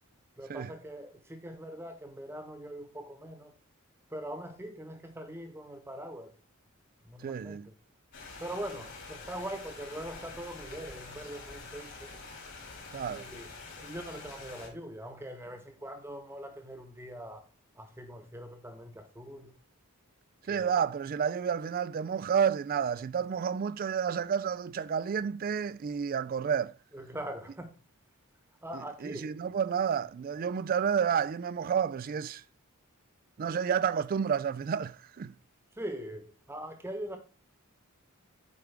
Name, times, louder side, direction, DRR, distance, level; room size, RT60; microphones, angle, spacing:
voice 1, 0.4-3.5 4.1-6.3 7.0-7.7 8.4-12.1 13.1-13.5 13.8-17.4 17.7-19.5 20.4-20.8 26.9-27.8 28.6-29.4 35.7-37.2, right 1 dB, 10° right, 1.0 m, -42 dB
voice 2, 7.2-7.7 12.9-13.3 20.5-26.7 29.0-32.4 33.4-35.3, right 7 dB, 40° right, 0.3 m, -30 dB
sound 1, 8.1-14.7, left 3 dB, 55° left, 2.7 m, -46 dB
8.1 x 4.8 x 3.4 m
head